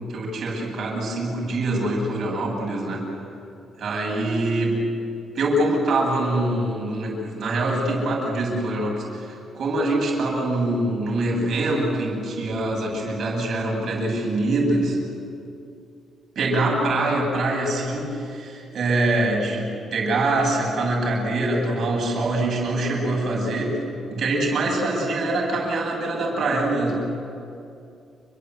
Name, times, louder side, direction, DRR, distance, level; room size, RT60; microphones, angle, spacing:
voice 1, 0.1-3.0 3.8-4.8 5.3-15.0 16.3-23.8 24.1-27.0, right 2 dB, 45° right, -1 dB, 8.0 m, -24 dB
29.5 x 23.5 x 8.3 m, 2.5 s
cardioid pair, 180°, 0 cm